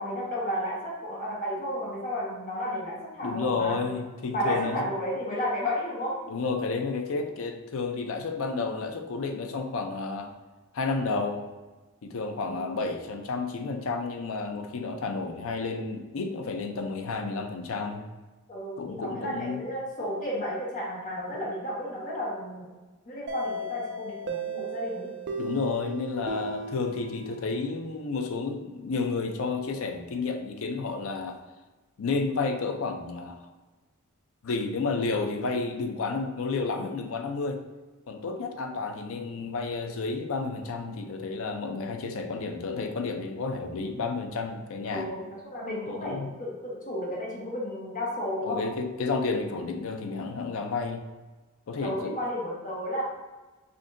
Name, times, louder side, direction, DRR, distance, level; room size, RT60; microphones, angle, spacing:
voice 1, 0.0-3.8 4.3-6.2 12.4-12.7 18.5-22.7 23.1-25.1 44.9-48.6 51.8-53.0, equal, 40° left, -5 dB, 1.2 m, -32 dB
voice 2, 3.2-4.9 6.3-10.3 10.7-11.5 12.0-18.1 18.8-19.6 25.4-31.4 32.0-33.5 34.4-37.6 38.1-45.1 45.9-46.3 48.4-51.0 51.7-52.2, left 4 dB, 70° left, 5 dB, 0.5 m, -31 dB
sound 1, 23.3-28.0, right 2 dB, 55° right, 0.4 m, -36 dB
5.1 x 2.7 x 2.5 m, 1.2 s
head